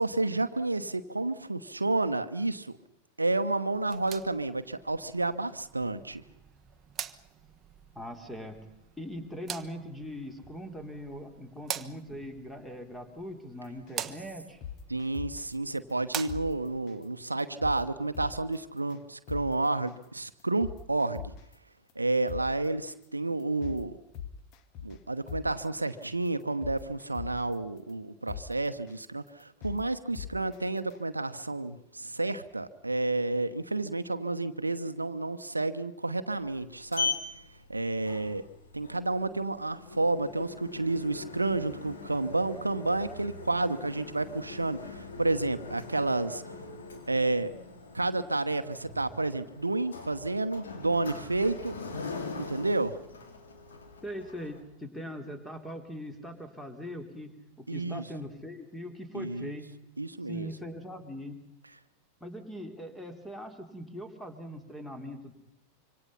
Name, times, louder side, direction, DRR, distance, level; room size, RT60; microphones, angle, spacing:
voice 1, 0.0-2.8 3.2-6.2 14.9-21.3 22.0-24.0 24.8-37.1 37.7-38.4 38.7-46.4 47.1-47.5 47.9-51.8 52.4-53.0 57.7-58.0 59.1-59.5 60.0-60.5, right 2 dB, 80° right, 11 dB, 1.0 m, -30 dB
sound 1, 3.7-16.8, right 8 dB, 25° right, 1.3 m, -44 dB
voice 2, 8.0-8.6 9.0-14.6 54.0-59.7 60.3-61.5 62.2-65.3, equal, 5° left, 7 dB, 3.6 m, -41 dB
sound 2, 13.9-14.0 14.4-15.5 15.9-16.0 16.3-16.4 16.9-17.0 17.4-17.8 18.1-18.6 18.9-19.0 19.3-19.4 19.9-20.0 20.4-21.5 21.9-22.0 22.3-22.4 22.9-23.0 23.4-23.8 24.1-25.0 25.3-25.4 25.9-26.0 26.4-27.5 27.9-28.0 28.3-28.4 28.9-29.0 29.4-29.8 30.1-30.6 30.9-31.0, left 10 dB, 40° left, 1.8 m, -40 dB
Sliding door, 36.3-54.6, left 4 dB, 65° left, 4.3 m, -41 dB
26.0 x 25.0 x 5.7 m, 0.86 s
figure-of-eight pair, 90°, 0 cm